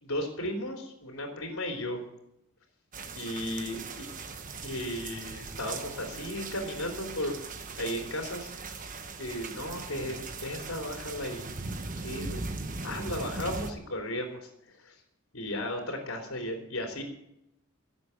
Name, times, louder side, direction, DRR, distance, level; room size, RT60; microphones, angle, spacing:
voice 1, 0.0-2.0 3.1-4.1 4.6-7.4 7.8-8.5 9.2-11.5 12.0-14.9 15.3-17.0, left 1 dB, 70° left, 1 dB, 3.4 m, -35 dB
sound 1, 2.9-13.7, right 3 dB, 40° right, 1.3 m, -39 dB
18.0 x 8.0 x 8.1 m, 0.81 s
head